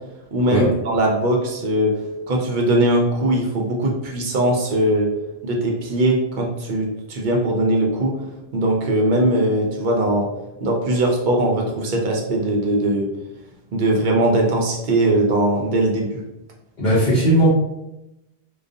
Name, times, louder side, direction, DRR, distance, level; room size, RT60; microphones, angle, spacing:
voice 1, 0.3-1.9 2.3-5.1 5.4-8.1 8.5-10.3 10.6-13.1 13.7-16.1, right 1 dB, 60° right, -1 dB, 0.6 m, -20 dB
voice 2, 16.8-17.5, right 1 dB, 50° left, -8 dB, 0.8 m, -17 dB
2.4 x 2.3 x 2.5 m, 0.91 s
omnidirectional pair, 1.1 m